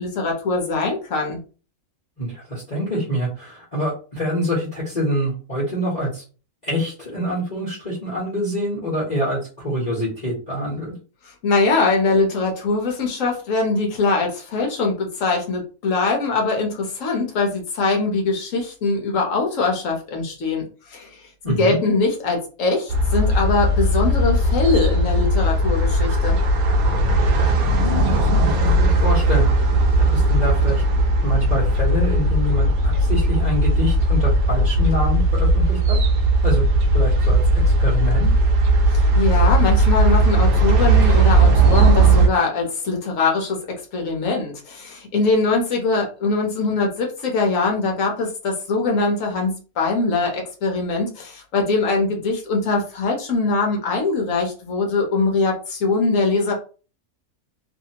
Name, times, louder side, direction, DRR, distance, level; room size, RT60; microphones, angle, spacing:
voice 1, 0.0-1.4 11.2-21.3 21.6-26.4 38.9-43.6 43.9-56.5, left 3 dB, 65° left, 1 dB, 1.1 m, -22 dB
voice 2, 2.2-6.2 6.6-10.9 21.4-21.8 27.8-29.7 30.0-30.8 31.2-36.0 36.4-36.6 36.9-38.3, equal, 30° left, -7 dB, 1.1 m, -25 dB
sound 1, 22.9-42.3, right 1 dB, 75° right, 1.1 m, -17 dB
2.8 x 2.7 x 2.8 m, 0.36 s
omnidirectional pair, 1.6 m